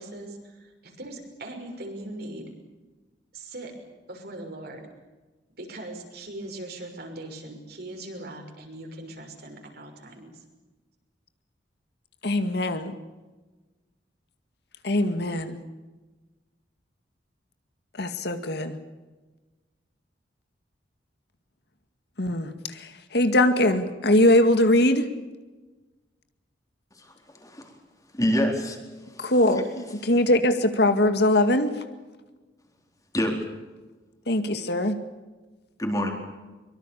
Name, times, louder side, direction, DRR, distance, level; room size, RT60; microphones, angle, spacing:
voice 1, 0.0-2.5 3.3-3.7 4.1-4.9 5.6-10.4, right 1 dB, 60° right, 3 dB, 6.2 m, -40 dB
voice 2, 12.2-12.9 14.8-15.6 18.0-18.8 22.2-22.5 23.1-25.1 29.2-31.7 34.3-35.0, left 1 dB, 65° left, 8 dB, 2.1 m, -21 dB
voice 3, 28.1-28.8 29.1-29.7 33.1-33.4 35.8-36.1, equal, 20° left, 2 dB, 4.3 m, -26 dB
23.5 x 23.5 x 7.0 m, 1.2 s
head